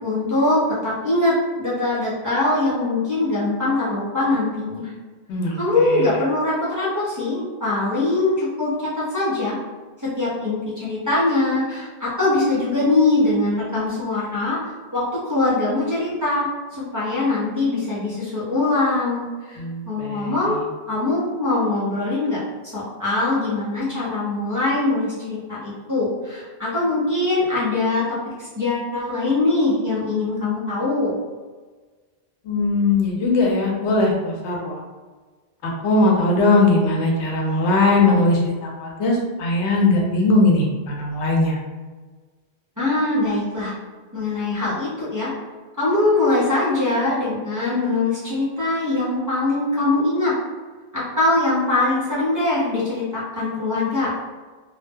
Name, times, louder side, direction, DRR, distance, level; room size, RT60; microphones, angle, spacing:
voice 1, 0.0-4.9 5.6-9.6 10.0-14.6 14.9-20.6 20.9-22.4 22.7-31.2 42.8-43.7 44.1-45.3 45.8-50.3 50.9-54.1, left 2 dB, 25° right, -9 dB, 0.5 m, -22 dB
voice 2, 5.3-6.1 19.6-20.6 32.4-34.8 35.6-41.6, left 2 dB, 85° left, -1 dB, 0.9 m, -20 dB
2.1 x 2.0 x 3.4 m, 1.4 s
omnidirectional pair, 1.1 m